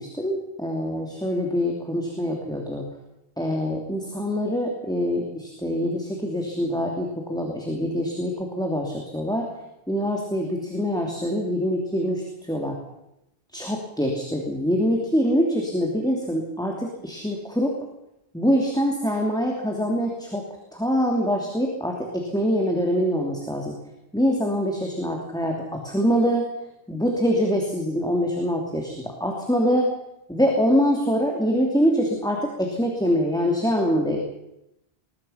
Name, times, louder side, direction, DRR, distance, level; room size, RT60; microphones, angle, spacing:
voice 1, 0.0-2.8 3.4-9.5 9.9-12.7 13.5-17.7 18.3-20.4 20.7-23.7 24.1-26.5 26.9-29.9 30.3-34.2, equal, 5° left, 0 dB, 3.0 m, -24 dB
21.5 x 21.0 x 5.8 m, 0.86 s
omnidirectional pair, 1.1 m